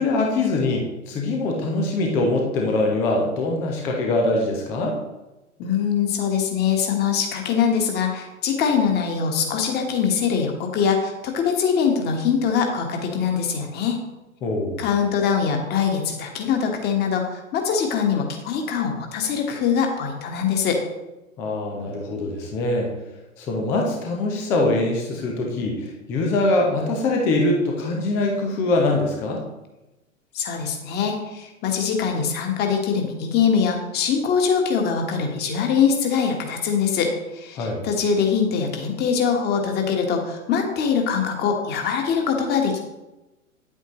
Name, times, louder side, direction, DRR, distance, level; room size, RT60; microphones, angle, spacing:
voice 1, 0.0-5.0 14.4-14.8 21.4-22.9 23.4-29.4 37.5-37.8, left 2 dB, 5° left, 1 dB, 0.3 m, -23 dB
voice 2, 5.6-14.0 14.8-20.8 30.3-42.8, left 6 dB, 25° left, 3 dB, 1.4 m, -23 dB
9.6 x 8.2 x 3.0 m, 1.0 s
figure-of-eight pair, 100°, 41 cm